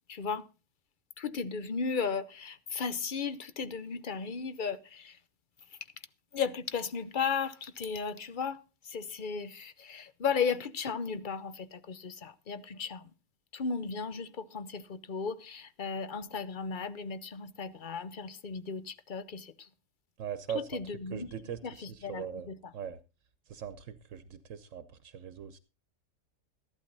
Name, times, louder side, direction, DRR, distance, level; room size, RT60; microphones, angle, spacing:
voice 1, 0.1-0.5 1.2-5.2 5.7-5.8 6.3-13.1 13.5-19.7 20.5-22.7, left 5 dB, 45° left, 0.8 m, -35 dB
voice 2, 20.2-20.8 21.1-23.0 23.5-25.6, right 8 dB, 80° right, 1.2 m, -40 dB
13.5 x 11.5 x 4.0 m
omnidirectional pair, 1.3 m